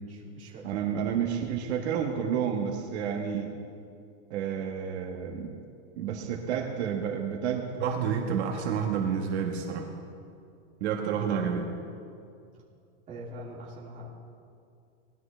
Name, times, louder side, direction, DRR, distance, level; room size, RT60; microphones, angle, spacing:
voice 1, 0.1-1.4 13.1-14.1, right 1 dB, 20° right, -6 dB, 2.9 m, -44 dB
voice 2, 0.6-3.5 4.3-5.5 6.0-9.9 10.8-11.7, right 7 dB, 70° right, 2 dB, 1.5 m, -30 dB
20.0 x 12.5 x 3.3 m, 2.4 s
supercardioid pair, 170°, 34 cm